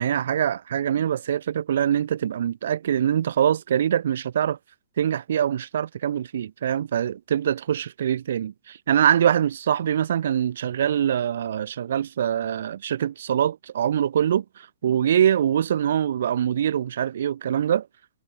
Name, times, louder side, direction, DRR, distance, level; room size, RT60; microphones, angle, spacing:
voice 1, 0.0-4.6 5.0-17.9, right 9 dB, 70° right, 1.8 m, -24 dB
hypercardioid pair, 160°, 0 cm